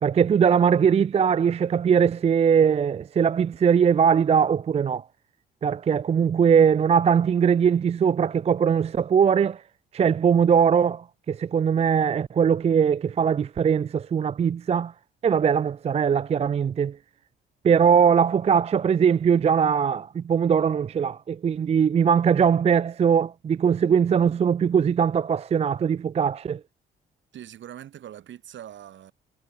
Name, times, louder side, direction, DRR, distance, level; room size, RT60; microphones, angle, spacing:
voice 1, 0.0-5.0 5.6-9.6 9.9-14.9 15.2-17.0 17.6-26.6, right 7 dB, 30° right, 0.4 m, -21 dB
voice 2, 27.3-29.1, right 11 dB, 70° right, 5.8 m, -42 dB
cardioid pair, 90°, 20 cm